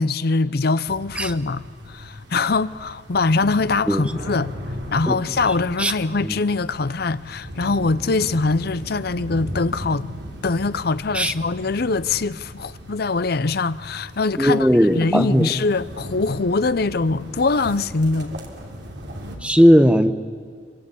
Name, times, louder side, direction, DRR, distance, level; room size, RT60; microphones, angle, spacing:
voice 1, 0.0-4.5 4.9-10.1 10.4-14.7 14.9-18.4, left 3 dB, 55° left, 0.7 m, -23 dB
sound 1, 0.9-19.4, equal, 65° right, 3.3 m, -37 dB
voice 2, 14.4-15.5 19.4-20.1, equal, 5° right, 1.0 m, -16 dB
25.0 x 23.5 x 8.4 m
head